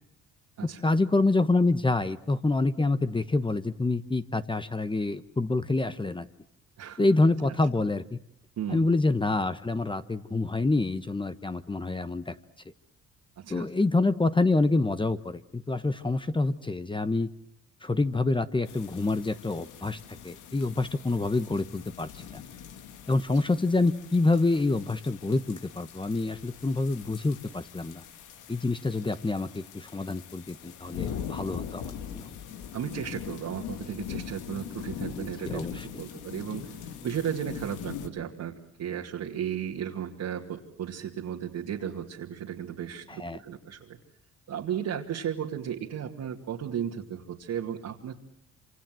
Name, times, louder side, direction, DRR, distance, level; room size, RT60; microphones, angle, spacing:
voice 1, 0.6-6.3 7.0-8.2 8.7-12.3 13.5-17.3 17.8-22.4 23.1-28.0 28.5-32.3 35.1-35.9 43.1-43.4, left 2 dB, 15° left, 12 dB, 1.1 m, -27 dB
sound 1, 18.7-38.1, left 8 dB, 90° left, 2.0 m, -42 dB
voice 2, 32.7-35.7 36.0-36.8 37.0-44.0 44.5-48.2, right 9 dB, 70° right, -2 dB, 2.4 m, -34 dB
26.5 x 26.0 x 7.7 m, 0.69 s
cardioid pair, 90°, 30 cm